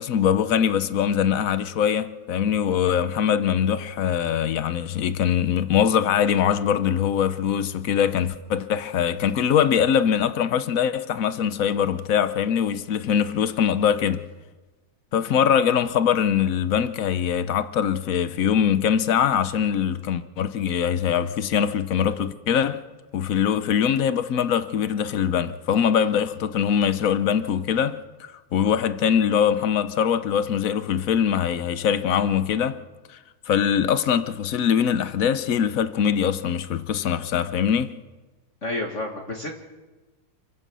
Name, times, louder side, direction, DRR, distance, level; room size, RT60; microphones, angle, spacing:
voice 1, 0.0-14.3 15.1-22.8 23.1-32.8 33.1-33.2 33.5-37.9, left 8 dB, 70° left, 0.8 m, -22 dB
voice 2, 38.6-39.5, left 2 dB, 35° left, 1.9 m, -30 dB
27.5 x 15.5 x 6.2 m
omnidirectional pair, 2.4 m